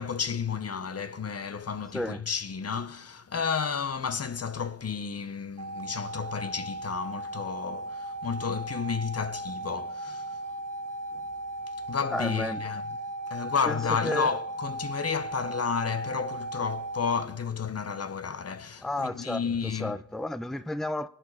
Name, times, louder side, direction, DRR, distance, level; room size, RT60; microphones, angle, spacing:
voice 1, 0.0-10.4 11.1-11.3 11.7-12.9 13.3-20.0, left 6 dB, 50° left, 1.0 m, -32 dB
sound 1, 5.6-17.2, right 2 dB, 85° right, 1.7 m, -37 dB
voice 2, 12.1-12.6 13.6-14.3 18.8-21.1, left 1 dB, ahead, 0.6 m, -32 dB
24.0 x 9.2 x 4.9 m
cardioid pair, 55°, 31 cm